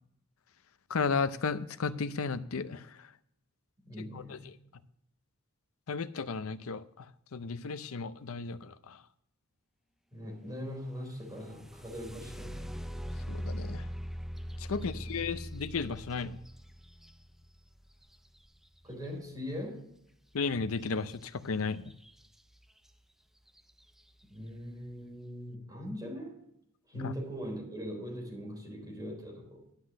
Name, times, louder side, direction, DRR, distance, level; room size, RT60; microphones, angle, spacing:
voice 1, 0.9-3.1 4.1-4.4 5.9-9.0 13.3-13.9 14.6-16.4 20.3-21.9 26.9-27.1, left 4 dB, 65° left, 0.6 m, -34 dB
voice 2, 3.8-4.5 10.1-12.7 14.7-15.2 18.8-19.8 24.3-26.4 26.9-29.6, equal, 15° right, 3.8 m, -41 dB
sound 1, 11.2-19.0 21.1-21.3 21.7-22.3 22.9-23.0 23.5-23.8, equal, ahead, 0.4 m, -41 dB
11.5 x 6.0 x 6.3 m
head